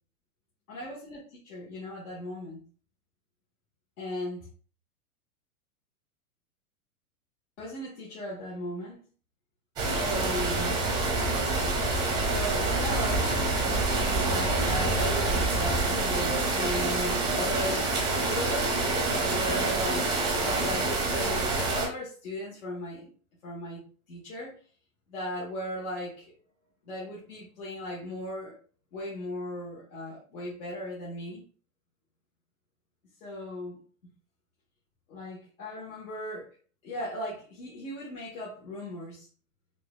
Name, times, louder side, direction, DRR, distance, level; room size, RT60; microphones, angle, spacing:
voice 1, 0.7-2.6 4.0-4.5 7.6-9.1 9.9-10.8 12.0-17.9 18.2-20.1 20.4-23.1 23.4-23.8 24.1-24.6 25.1-26.2 26.8-28.6 28.9-31.4 33.2-33.8 35.1-36.5 36.8-39.3, left 1 dB, 75° left, -6 dB, 1.7 m, -37 dB
sound 1, 9.8-21.9, right 2 dB, 10° right, 0.5 m, -27 dB
4.7 x 2.6 x 2.4 m, 0.40 s
supercardioid pair, 155°, 42 cm